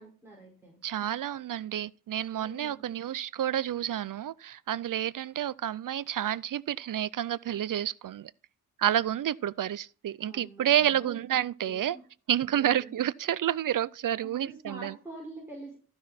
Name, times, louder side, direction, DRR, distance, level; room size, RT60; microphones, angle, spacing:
voice 1, 0.0-0.8 2.3-2.8 10.2-11.2 11.6-12.0 12.5-12.9 14.2-15.8, right 1 dB, 5° right, 5.2 m, -46 dB
voice 2, 0.8-8.3 8.8-12.0 12.3-14.9, right 11 dB, 65° right, 0.5 m, -29 dB
14.0 x 6.1 x 4.3 m
wide cardioid pair, 90°, 36 cm